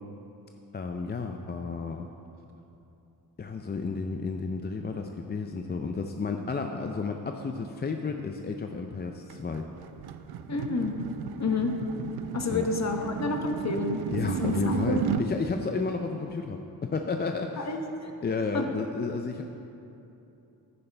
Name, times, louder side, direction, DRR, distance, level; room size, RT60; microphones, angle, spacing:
voice 1, 0.7-2.1 3.4-9.6 12.5-12.7 14.1-17.8 18.2-19.4, left 4 dB, 25° left, 4 dB, 0.5 m, -32 dB
sound 1, 9.3-15.3, right 8 dB, 80° right, 0.5 m, -34 dB
voice 2, 10.5-11.0 11.4-11.8 12.3-14.0 14.4-15.1 17.6-18.1 18.5-18.6, left 3 dB, 45° left, 4 dB, 1.0 m, -29 dB
10.0 x 9.6 x 3.4 m, 2.8 s
cardioid pair, 80°, 38 cm